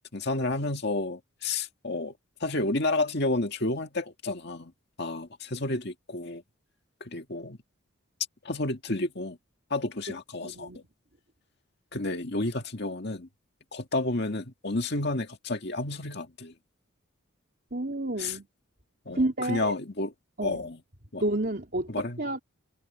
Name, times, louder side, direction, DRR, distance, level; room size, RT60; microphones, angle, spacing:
voice 1, 0.0-2.1 2.4-4.7 5.0-6.4 7.0-7.6 8.4-9.4 9.7-10.8 11.9-13.3 13.7-16.5 18.2-18.4 19.1-20.1 20.4-20.8 21.1-21.2 21.9-22.2, left 2 dB, 50° left, 2.0 m, -31 dB
voice 2, 10.4-10.8 17.7-18.5 19.1-19.8 20.4-20.6 21.2-22.4, right 1 dB, 45° right, 3.4 m, -30 dB
head